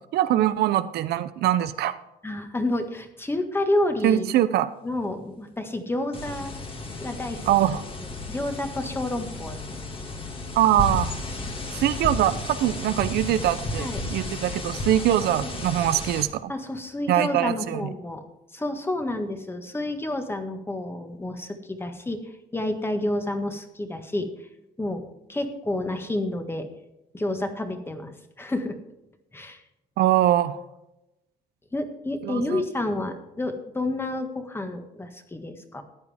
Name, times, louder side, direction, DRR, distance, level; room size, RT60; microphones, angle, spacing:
voice 1, 0.1-1.9 4.0-4.7 7.5-7.8 10.6-11.1 11.7-16.5 17.1-17.8 30.0-30.6 32.2-32.6, right 12 dB, 70° right, 12 dB, 0.7 m, -23 dB
voice 2, 2.2-4.3 4.8-6.5 7.0-7.5 8.0-9.6 13.8-14.0 15.4-15.5 16.5-18.3 18.5-24.5 24.8-25.0 25.3-26.7 27.1-28.1 28.4-28.7 29.3-29.6 31.7-35.8, left 1 dB, 15° left, 6 dB, 1.5 m, -29 dB
sound 1, 6.1-16.3, left 2 dB, 30° left, 1.9 m, -33 dB
14.0 x 9.6 x 3.5 m, 0.92 s
cardioid pair, 110°, 17 cm